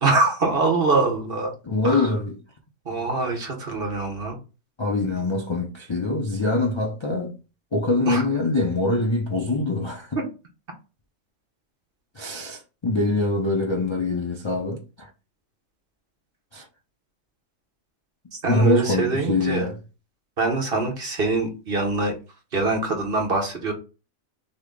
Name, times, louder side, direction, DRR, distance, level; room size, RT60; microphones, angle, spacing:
voice 1, 0.0-1.5 1.8-2.1 2.8-4.4 8.1-8.2 18.3-19.7 20.4-22.2 22.5-23.7, right 3 dB, 45° right, 1.2 m, -24 dB
voice 2, 1.7-2.3 4.8-7.4 7.7-10.2 12.2-15.1 16.5-16.6 18.5-19.7, left 2 dB, 35° left, 0.4 m, -24 dB
6.2 x 2.2 x 3.8 m
omnidirectional pair, 1.4 m